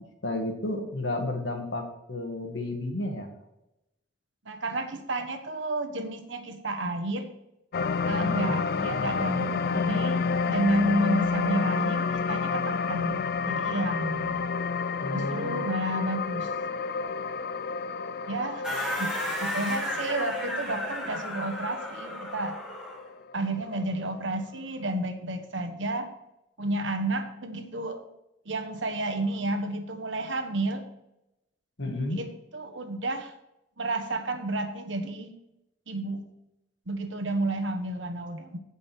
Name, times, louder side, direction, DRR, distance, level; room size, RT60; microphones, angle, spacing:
voice 1, 0.2-3.3 8.2-8.6 15.0-15.6 31.8-32.2, left 2 dB, 75° left, 3 dB, 2.0 m, -32 dB
voice 2, 4.4-7.3 8.0-14.4 15.1-16.5 18.3-18.7 19.0-22.6 23.3-26.1 26.6-28.0 28.4-30.8 32.2-33.3 33.8-35.3 35.9-36.2 36.9-38.6, right 1 dB, 80° right, 7 dB, 1.3 m, -31 dB
sound 1, 7.7-24.2 24.6-24.8, left 5 dB, 55° left, 0.4 m, -30 dB
sound 2, 18.6-23.0, left 1 dB, 5° right, 3.0 m, -33 dB
16.0 x 5.4 x 4.5 m, 0.90 s
head